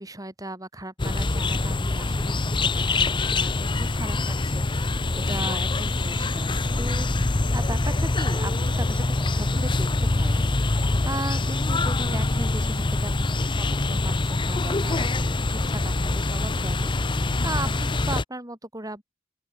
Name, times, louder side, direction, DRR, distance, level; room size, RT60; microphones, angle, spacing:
voice 1, 0.0-19.0, right 2 dB, 20° right, 6.2 m, -37 dB
sound 1, 1.0-18.2, left 2 dB, 25° left, 0.7 m, -24 dB
open air
head